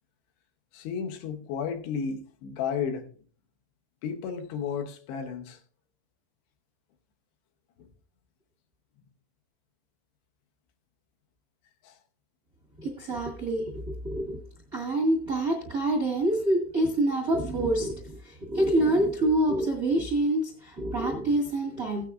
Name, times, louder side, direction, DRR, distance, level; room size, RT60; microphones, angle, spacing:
voice 1, 0.7-3.1 4.0-5.6 7.8-7.9 11.8-12.0, left 6 dB, 85° left, 3.1 m, -33 dB
voice 2, 12.8-14.4 14.7-22.1, right 1 dB, 45° right, 1.2 m, -26 dB
16.5 x 9.0 x 2.5 m
omnidirectional pair, 4.8 m